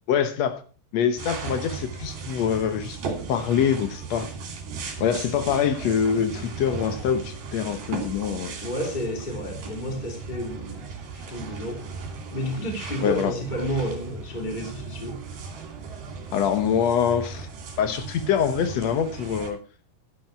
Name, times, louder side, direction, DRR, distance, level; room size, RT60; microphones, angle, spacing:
voice 1, 0.1-0.6 0.9-4.3 5.0-8.5 13.0-13.3 16.3-17.5 17.8-19.6, left 8 dB, 80° left, 1.5 m, -24 dB
sound 1, 1.2-19.5, right 5 dB, 65° right, 4.6 m, -37 dB
voice 2, 8.6-10.8 11.1-11.9 12.3-15.2, equal, 15° left, 2.4 m, -31 dB
12.5 x 11.0 x 4.5 m
omnidirectional pair, 4.6 m